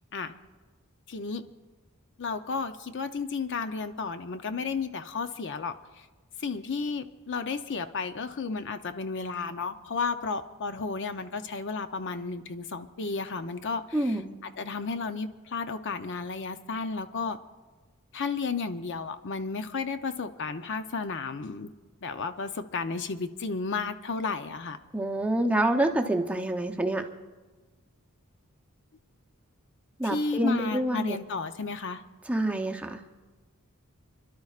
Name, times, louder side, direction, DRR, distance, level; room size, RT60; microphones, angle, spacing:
voice 1, 1.1-1.4 2.2-6.1 6.4-17.4 18.1-21.7 22.0-24.8 30.0-32.0, left 4 dB, 55° left, 9 dB, 0.6 m, -33 dB
voice 2, 13.9-14.4 24.9-27.0 30.0-31.2 32.3-33.0, right 1 dB, 5° right, 3 dB, 0.7 m, -27 dB
30.0 x 12.0 x 2.4 m, 1.3 s
head